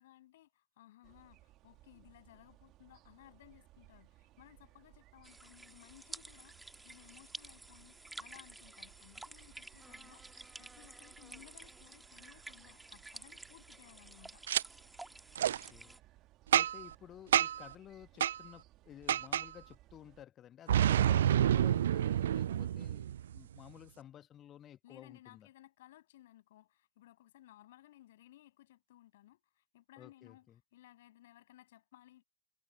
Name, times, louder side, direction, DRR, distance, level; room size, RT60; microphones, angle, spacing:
voice 1, 0.0-14.4 24.8-32.2, left 14 dB, 55° left, 7.9 m, -60 dB
sound 1, 1.0-20.2, right 16 dB, 35° right, 3.8 m, -63 dB
sound 2, 5.2-16.0, right 2 dB, 5° right, 2.2 m, -52 dB
Boom, 14.5-14.6 15.4-15.6 16.5-16.9 17.3-17.7 18.2-18.4 19.1-19.5 20.7-23.4, right 10 dB, 60° right, 0.3 m, -28 dB
voice 2, 15.3-15.9 16.5-23.0 23.3-25.5 30.0-30.4, left 11 dB, 30° left, 1.6 m, -54 dB
figure-of-eight pair, 90°, 0 cm